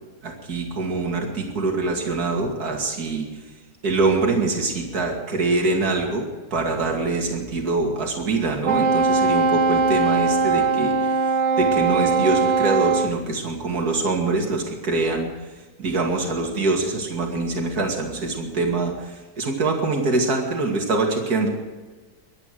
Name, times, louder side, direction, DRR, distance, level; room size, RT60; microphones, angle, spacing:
voice 1, 0.2-3.3 3.8-11.3 11.6-15.3 15.8-21.5, right 3 dB, 65° right, 1 dB, 2.9 m, -24 dB
Wind instrument woodwind instrument, 8.6-13.1, right 4 dB, 50° right, 0.7 m, -20 dB
23.0 x 9.8 x 6.4 m, 1.3 s
omnidirectional pair, 1.8 m